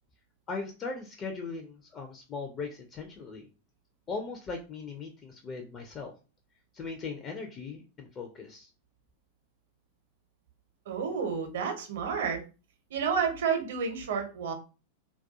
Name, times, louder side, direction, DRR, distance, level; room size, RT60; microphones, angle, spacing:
voice 1, 0.5-3.5 4.1-6.1 6.7-8.7, left 4 dB, 30° left, 4 dB, 0.4 m, -39 dB
voice 2, 10.9-12.4 12.9-14.5, right 6 dB, 60° right, 4 dB, 0.6 m, -30 dB
2.2 x 2.2 x 2.6 m, 0.33 s
figure-of-eight pair, 90°, 0 cm